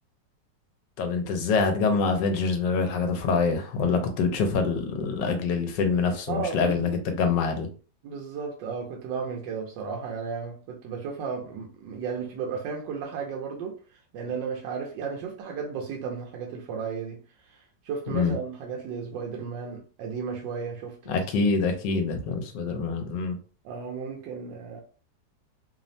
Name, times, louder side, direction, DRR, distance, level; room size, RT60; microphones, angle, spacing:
voice 1, 1.0-7.7 18.1-18.4 21.1-23.4, left 4 dB, 80° left, 1.3 m, -25 dB
voice 2, 6.3-7.0 8.0-13.7 14.1-17.2 17.5-21.5 23.6-24.8, right 5 dB, 90° right, 1.3 m, -34 dB
3.3 x 2.0 x 2.6 m
omnidirectional pair, 1.9 m